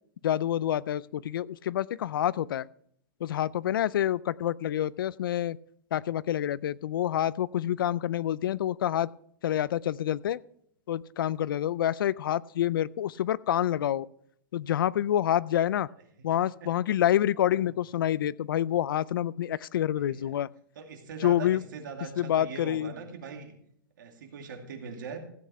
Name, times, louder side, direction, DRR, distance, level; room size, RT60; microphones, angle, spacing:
voice 1, 0.2-2.7 3.2-5.6 5.9-9.1 9.4-10.4 10.9-14.1 14.5-15.9 16.2-20.5 21.2-21.6 22.2-22.9, left 11 dB, 75° left, 21 dB, 0.4 m, -27 dB
voice 2, 16.2-16.7 17.5-17.7 19.9-20.4 20.8-23.5 24.0-25.2, right 5 dB, 60° right, 3 dB, 2.3 m, -42 dB
15.5 x 8.5 x 3.4 m, 0.67 s
supercardioid pair, 180°, 11 cm